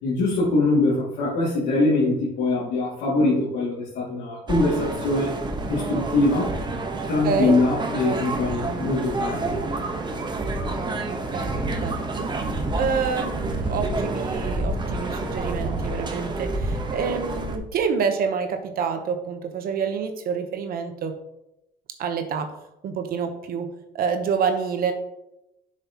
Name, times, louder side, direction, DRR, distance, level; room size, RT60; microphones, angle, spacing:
voice 1, 0.0-5.3 5.7-6.5 7.1-9.6, left 2 dB, 90° left, -8 dB, 2.4 m, -23 dB
sound 1, 4.5-17.6, right 2 dB, 25° right, 1.0 m, -28 dB
voice 2, 6.9-7.6 11.1-12.0 12.7-21.1 22.0-22.5 22.8-23.7 23.9-24.9, right 6 dB, 60° right, 7 dB, 1.0 m, -27 dB
7.9 x 6.3 x 3.0 m, 0.86 s
cardioid pair, 110°, 17 cm